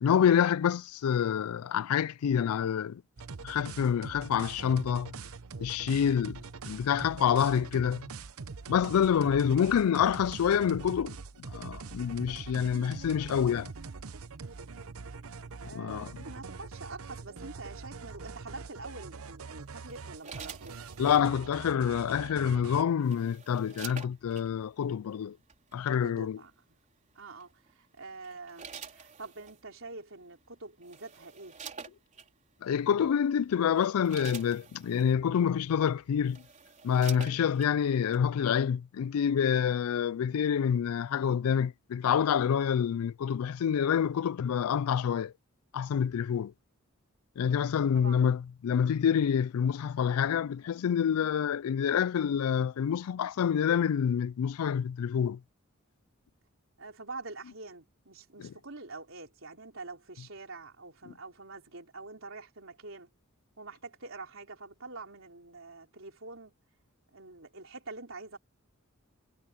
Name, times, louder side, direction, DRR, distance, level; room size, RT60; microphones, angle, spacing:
voice 1, 0.0-3.0 3.4-5.2 5.6-6.4 6.7-8.1 8.7-13.7 15.8-16.1 21.0-25.4 25.7-26.4 32.6-36.4 36.8-45.3 45.7-46.5 47.4-55.4 58.4-58.5, left 8 dB, 85° left, 0.4 m, -27 dB
sound 1, 3.2-22.8, right 4 dB, 85° right, 0.8 m, -44 dB
voice 2, 15.6-20.9 26.0-26.8 27.1-31.6 37.2-37.4 47.9-48.3 56.8-63.1 63.6-66.5 67.1-68.4, right 3 dB, 65° right, 4.5 m, -46 dB
sound 2, 19.9-21.3 22.6-24.5 25.5-25.7 27.4-27.7 28.2-29.6 30.4-30.5 30.8-32.3 33.0-33.2 33.6-35.1 35.8-35.9 36.2-37.7 38.1-38.2, right 6 dB, 35° right, 4.1 m, -47 dB
head